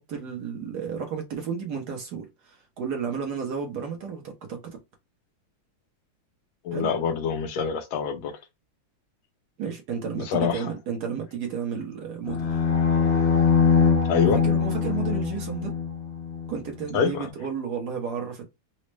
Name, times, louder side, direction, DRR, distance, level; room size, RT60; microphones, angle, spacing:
voice 1, 0.0-4.6 6.7-6.9 9.6-12.6 14.3-15.7 16.5-18.4, right 6 dB, 65° right, 1.1 m, -32 dB
voice 2, 6.6-8.3 10.3-10.7 14.1-14.4 16.9-17.3, left 7 dB, 80° left, 1.5 m, -25 dB
sound 1, 12.2-16.5, left 5 dB, 55° left, 0.7 m, -22 dB
4.0 x 2.1 x 3.2 m
omnidirectional pair, 2.2 m